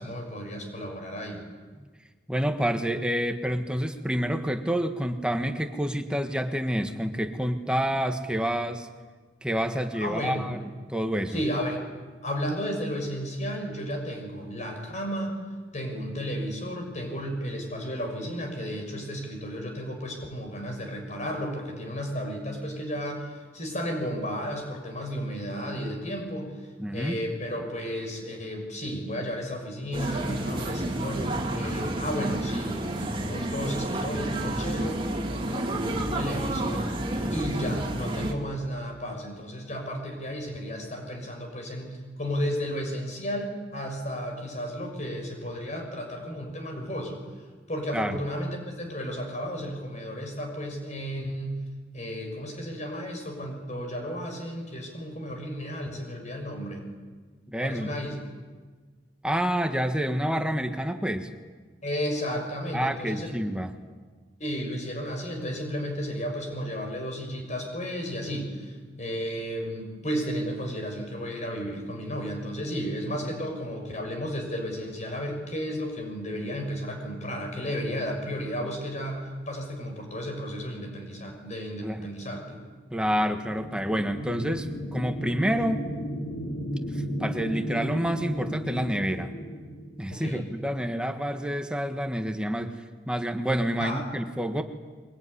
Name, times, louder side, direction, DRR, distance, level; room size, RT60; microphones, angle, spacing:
voice 1, 0.0-1.4 10.0-10.5 11.3-11.8 12.2-15.4 15.7-26.6 26.9-35.1 35.5-36.9 37.3-47.2 47.7-51.6 51.9-56.9 57.6-58.2 61.8-63.3 64.4-82.6 90.1-90.5 93.8-94.0, equal, 40° left, 3 dB, 6.1 m, -33 dB
voice 2, 2.3-8.9 9.4-10.6 10.9-11.4 26.8-27.2 47.9-48.2 57.5-57.9 59.2-61.3 62.7-63.7 73.2-73.3 81.8-82.0 82.9-85.9 86.9-89.3 90.0-94.6, equal, 5° right, 6 dB, 1.5 m, -28 dB
sound 1, 29.9-38.3, right 1 dB, 30° right, 2.9 m, -30 dB
Passing Ship, 82.8-90.5, equal, 65° left, 4.0 m, -34 dB
23.5 x 23.0 x 10.0 m, 1.4 s
head